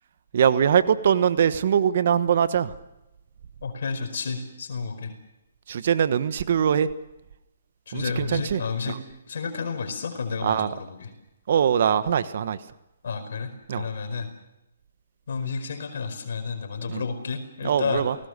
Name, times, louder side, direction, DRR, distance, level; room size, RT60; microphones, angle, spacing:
voice 1, 0.3-2.7 5.7-6.9 7.9-9.0 10.4-10.7 11.5-12.6 13.7-13.8 16.9-17.0 17.6-18.2, right 8 dB, 55° right, 13 dB, 1.3 m, -22 dB
voice 2, 3.6-5.1 7.9-9.0 9.3-11.1 13.0-14.3 15.3-18.0, left 5 dB, 65° left, 5 dB, 4.9 m, -31 dB
29.0 x 19.0 x 6.8 m, 0.92 s
hypercardioid pair, 150°, 0 cm